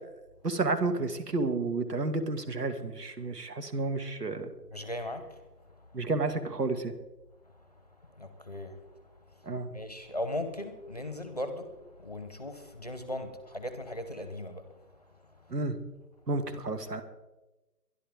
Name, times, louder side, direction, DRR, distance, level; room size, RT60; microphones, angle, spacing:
voice 1, 0.4-4.5 5.9-6.9 9.5-9.7 15.5-15.8 16.3-17.0, right 3 dB, 75° right, 8 dB, 2.2 m, -31 dB
voice 2, 4.7-5.4 8.2-8.8 9.7-11.7 12.0-14.7, left 1 dB, 25° left, 8 dB, 0.9 m, -37 dB
23.5 x 11.5 x 3.7 m, 1.1 s
hypercardioid pair, 175°, 48 cm